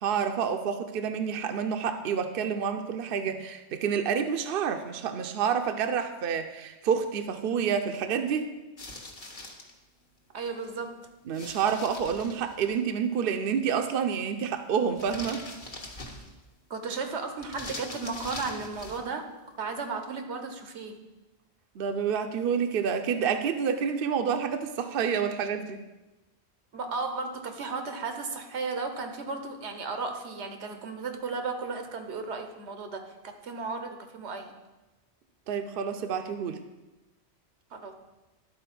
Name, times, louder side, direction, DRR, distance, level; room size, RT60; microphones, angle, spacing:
voice 1, 0.0-8.5 11.3-15.4 21.7-25.8 35.5-36.6, right 7 dB, 60° right, 7 dB, 0.8 m, -28 dB
sound 1, 8.8-9.7 11.3-12.8 14.9-16.5 17.4-19.1, left 2 dB, 50° left, 1.3 m, -42 dB
voice 2, 10.3-11.1 16.7-19.3 19.6-21.0 26.7-34.5 37.7-37.9, right 4 dB, 85° right, 6 dB, 1.2 m, -35 dB
11.5 x 4.3 x 5.9 m, 1.1 s
omnidirectional pair, 1.1 m